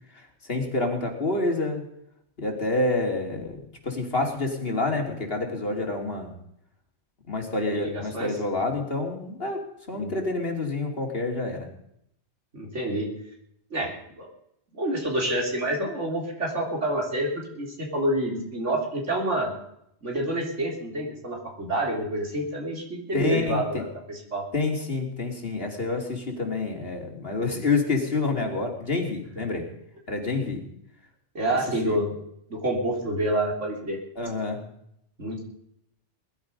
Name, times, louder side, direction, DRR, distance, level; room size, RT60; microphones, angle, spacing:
voice 1, 0.1-1.8 2.4-3.6 3.8-6.4 7.3-11.7 23.1-23.9 24.5-29.7 30.1-30.6 31.8-32.0 34.2-34.6, left 3 dB, 55° left, 2 dB, 3.0 m, -28 dB
voice 2, 7.7-8.3 10.0-10.1 12.5-13.1 13.7-14.3 14.7-19.5 20.0-24.5 29.4-29.5 31.3-32.2 32.5-34.0 35.2-35.4, right 1 dB, 85° right, 0 dB, 4.1 m, -28 dB
20.5 x 12.0 x 5.3 m, 0.75 s
omnidirectional pair, 1.2 m